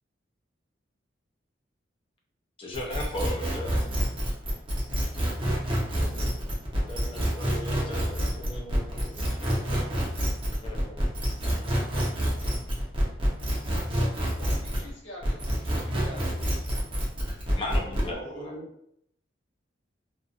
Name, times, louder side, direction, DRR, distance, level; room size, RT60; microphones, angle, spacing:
voice 1, 2.6-3.8 6.9-9.8 10.6-11.1 17.6-18.5, left 1 dB, 30° left, -1 dB, 0.6 m, -37 dB
sound 1, 2.7-14.9 15.2-18.1, equal, 30° right, 0.7 m, -28 dB
voice 2, 5.7-6.4 17.7-18.7, right 1 dB, 75° right, -4 dB, 1.0 m, -44 dB
voice 3, 14.4-16.6, left 1 dB, 80° left, -2 dB, 0.8 m, -46 dB
2.6 x 2.4 x 2.4 m, 0.73 s
head